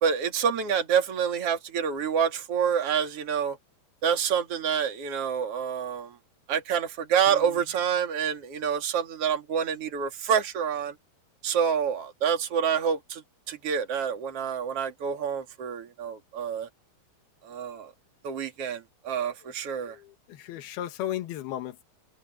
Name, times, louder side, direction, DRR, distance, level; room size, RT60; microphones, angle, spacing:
voice 1, 0.0-3.6 4.0-6.2 6.5-10.9 11.4-16.7 17.4-17.9 18.2-20.0, right 7 dB, 40° right, 3.0 m, -27 dB
voice 2, 19.8-21.8, left 12 dB, 70° left, 3.3 m, -35 dB
omnidirectional pair, 4.8 m